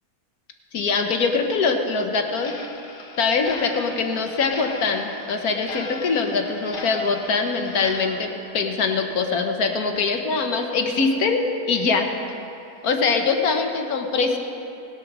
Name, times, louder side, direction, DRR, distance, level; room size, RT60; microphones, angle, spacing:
voice 1, 0.7-2.5 3.2-12.1 12.8-14.4, left 4 dB, 70° left, 4 dB, 1.6 m, -23 dB
Clock, 2.4-9.6 9.9-10.0 10.5-10.6 11.1-11.2 11.7-11.8 12.3-12.4 12.9-13.0, left 2 dB, 40° left, 1.2 m, -38 dB
19.0 x 8.3 x 6.1 m, 2.7 s
omnidirectional pair, 1.6 m